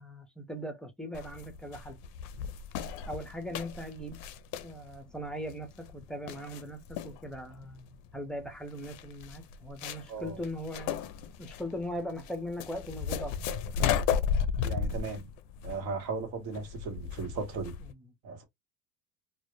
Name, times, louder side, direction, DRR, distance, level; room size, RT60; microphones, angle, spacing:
voice 1, 0.0-2.0 3.1-4.2 4.6-11.1 11.4-13.5 14.7-15.0 17.8-18.1, equal, ahead, 0.5 m, -40 dB
sound 1, 1.1-17.9, left 7 dB, 55° left, 0.4 m, -35 dB
voice 2, 10.1-10.4 14.6-15.3 15.6-17.7 18.2-18.4, right 4 dB, 70° right, 1.0 m, -36 dB
2.2 x 2.0 x 3.0 m
supercardioid pair, 105°, 36 cm